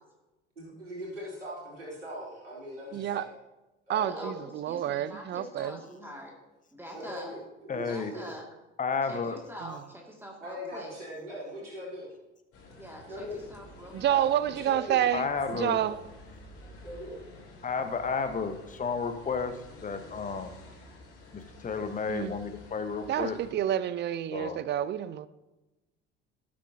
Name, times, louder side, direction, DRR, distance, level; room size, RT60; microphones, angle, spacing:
voice 1, 0.6-3.3 3.9-4.3 6.9-8.3 10.4-12.1 13.1-13.4 14.1-14.2 14.5-15.0 15.5-15.9 16.8-17.1, equal, 85° right, 4.2 m, -40 dB
voice 2, 2.9-3.2 3.9-5.8 9.6-9.8 13.9-16.0 22.1-22.3 23.1-25.3, right 11 dB, 30° right, 0.6 m, -29 dB
voice 3, 4.0-4.3 4.7-6.4 6.7-7.3 7.9-8.5 9.1-11.0 12.8-14.3, equal, 5° right, 2.3 m, -44 dB
voice 4, 7.7-8.1 8.8-9.4 15.1-15.8 17.6-20.6 21.3-23.4 24.3-24.6, left 5 dB, 20° left, 1.3 m, -32 dB
sound 1, 12.5-23.5, left 2 dB, 40° left, 3.8 m, -50 dB
18.5 x 8.6 x 2.8 m
figure-of-eight pair, 65°, 35 cm